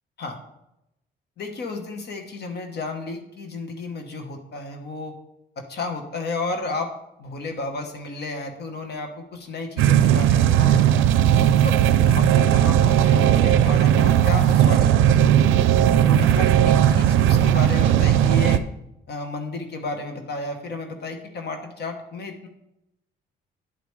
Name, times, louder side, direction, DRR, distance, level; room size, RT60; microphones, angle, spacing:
voice 1, 1.4-5.1 5.6-6.9 7.2-10.8 11.6-11.8 12.1-15.2 16.0-18.6 19.1-22.5, left 3 dB, 55° left, 5 dB, 1.2 m, -32 dB
sound 1, 9.8-18.6, right 10 dB, 85° right, 0.4 m, -17 dB
10.5 x 5.1 x 3.2 m, 0.85 s
cardioid pair, 90°, 20 cm